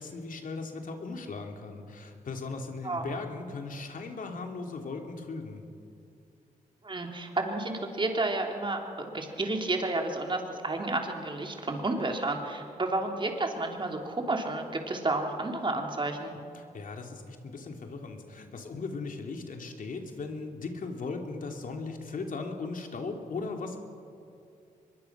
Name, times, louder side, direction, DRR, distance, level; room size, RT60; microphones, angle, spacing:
voice 1, 0.0-5.6 16.5-23.8, left 3 dB, 65° left, 3 dB, 2.7 m, -38 dB
voice 2, 6.8-16.3, right 2 dB, 35° right, 2 dB, 3.4 m, -31 dB
24.0 x 21.5 x 6.0 m, 2.6 s
cardioid pair, 70°, 15 cm